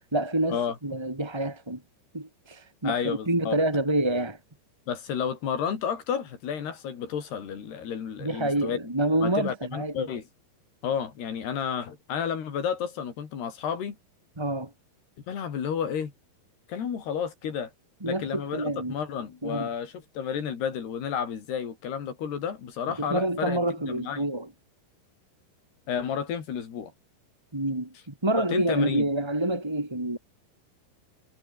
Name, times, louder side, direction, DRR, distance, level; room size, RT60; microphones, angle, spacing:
voice 1, 0.1-1.8 2.1-4.4 8.2-10.1 14.4-14.7 18.0-18.2 18.5-18.9 19.4-19.7 23.0-24.5 27.5-27.9 28.2-30.2, right 1 dB, 10° right, 1.4 m, -27 dB
voice 2, 2.8-3.6 4.9-8.8 9.2-10.3 10.8-14.0 15.3-16.1 16.7-17.7 18.1-24.3 25.9-26.9 28.3-29.1, left 7 dB, 85° left, 5.6 m, -31 dB
omnidirectional pair, 4.5 m